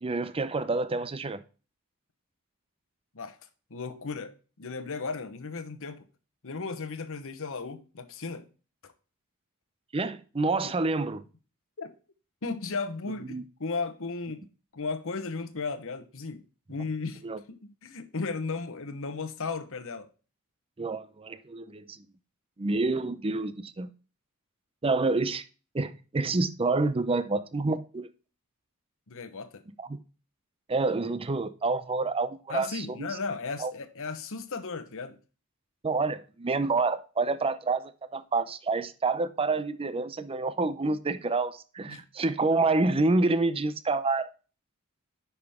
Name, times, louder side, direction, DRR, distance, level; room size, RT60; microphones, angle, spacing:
voice 1, 0.0-1.4 9.9-11.2 13.3-13.4 17.2-17.4 20.8-22.0 22.6-23.9 24.8-25.4 25.7-28.1 29.8-30.0 30.7-33.2 33.6-33.7 35.8-44.3, right 3 dB, 25° right, 0.5 m, -28 dB
voice 2, 3.7-6.0 6.4-8.5 8.8-8.9 10.6-10.7 11.8-11.9 12.4-14.4 14.7-16.4 16.7-20.1 29.1-29.6 32.5-35.2 41.9-42.0, left 4 dB, 65° left, 1.0 m, -35 dB
9.9 x 6.0 x 3.6 m
head